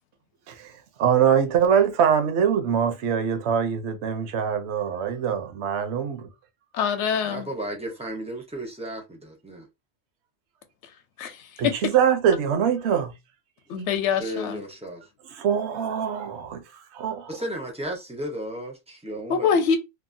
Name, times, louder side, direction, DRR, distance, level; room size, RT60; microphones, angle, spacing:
voice 1, 0.5-6.3 11.6-13.1 15.3-17.3, right 8 dB, 65° right, 0.8 m, -23 dB
voice 2, 6.7-7.5 11.2-11.4 11.6-11.7 13.7-14.6 19.3-19.8, left 6 dB, 65° left, 0.9 m, -24 dB
voice 3, 7.2-9.7 14.2-15.0 17.3-19.6, right 1 dB, 10° right, 0.4 m, -34 dB
2.9 x 2.1 x 2.5 m
omnidirectional pair, 1.4 m